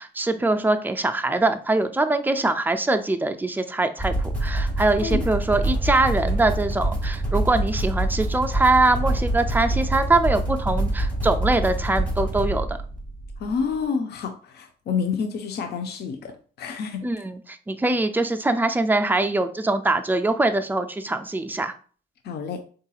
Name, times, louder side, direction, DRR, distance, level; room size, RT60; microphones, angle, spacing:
voice 1, 0.0-12.8 17.0-21.7, right 2 dB, 10° right, 7 dB, 0.3 m, -23 dB
sound 1, 4.0-13.6, right 1 dB, 5° left, 1.1 m, -26 dB
voice 2, 13.4-16.3 16.6-17.0 22.2-22.6, left 6 dB, 55° left, 6 dB, 0.5 m, -28 dB
3.8 x 2.7 x 2.3 m, 0.41 s
cardioid pair, 90°, 20 cm